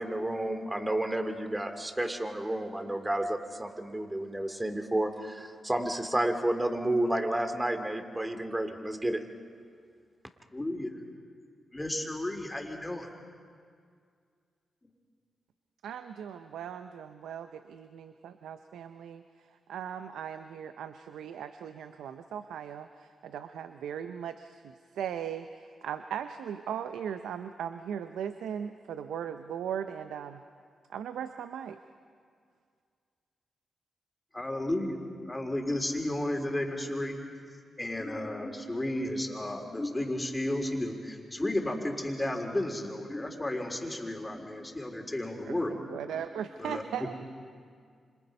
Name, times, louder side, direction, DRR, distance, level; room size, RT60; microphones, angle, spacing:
voice 1, 0.0-9.2, right 1 dB, 15° right, 7 dB, 2.5 m, -31 dB
voice 2, 10.5-11.0 11.7-13.1 34.3-37.2 37.8-45.8 46.6-46.8, left 1 dB, 20° left, 2 dB, 3.9 m, -33 dB
voice 3, 15.8-30.4 30.9-31.8 45.4-47.1, right 8 dB, 85° right, 9 dB, 0.6 m, -38 dB
28.0 x 26.5 x 5.4 m, 2.1 s
supercardioid pair, 50°, 0 cm